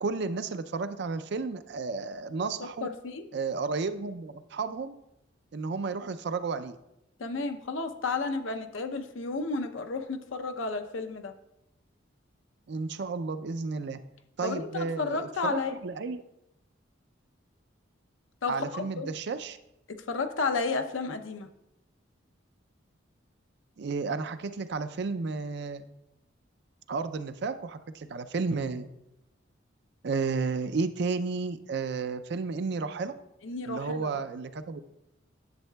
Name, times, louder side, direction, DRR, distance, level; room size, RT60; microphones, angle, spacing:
voice 1, 0.0-2.9 3.3-4.9 5.5-6.8 12.7-14.0 14.4-16.2 18.5-19.6 23.8-25.8 26.9-28.9 30.0-33.1 33.7-34.8, right 4 dB, 60° right, 11 dB, 0.4 m, -32 dB
voice 2, 2.6-3.2 7.2-11.3 14.4-15.7 18.4-19.1 20.1-21.5 33.4-34.2, left 4 dB, 85° left, 7 dB, 0.6 m, -32 dB
10.5 x 7.3 x 2.2 m, 0.86 s
head